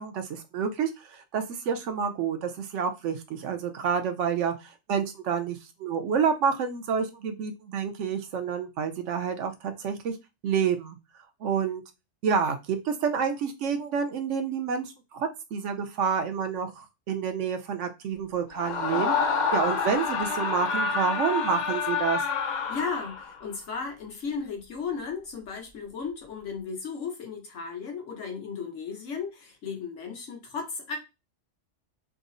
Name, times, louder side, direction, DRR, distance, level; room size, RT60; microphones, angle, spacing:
voice 1, 0.0-10.2 10.4-11.0 11.4-11.8 12.2-14.8 15.1-19.2 19.5-22.2, right 6 dB, 75° right, 0.9 m, -28 dB
Screaming, 18.5-23.4, left 5 dB, 60° left, 0.5 m, -28 dB
voice 2, 22.7-31.0, left 5 dB, 85° left, 1.3 m, -35 dB
3.6 x 2.0 x 2.5 m
omnidirectional pair, 1.3 m